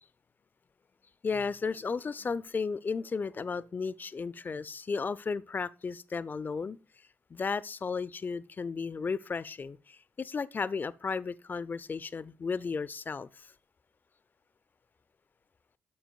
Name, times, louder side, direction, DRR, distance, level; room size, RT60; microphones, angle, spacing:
voice 1, 1.2-6.8 7.3-13.3, left 5 dB, 30° left, 0.4 m, -34 dB
8.5 x 7.1 x 2.3 m
figure-of-eight pair, 40°, 6 cm